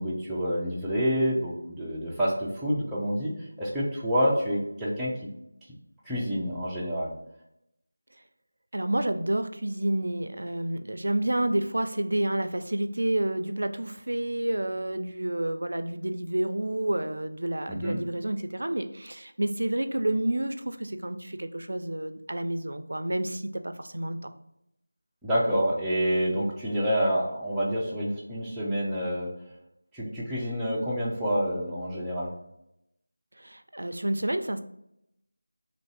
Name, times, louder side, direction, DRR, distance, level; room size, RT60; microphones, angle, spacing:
voice 1, 0.0-3.3 3.6-5.1 6.1-7.1 17.7-18.0 25.2-29.3 29.9-32.3, equal, ahead, -10 dB, 0.4 m, -28 dB
voice 2, 8.7-24.3 33.4-34.6, right 1 dB, 75° right, 9 dB, 0.4 m, -29 dB
3.1 x 2.6 x 4.0 m, 0.82 s
figure-of-eight pair, 175°, 0 cm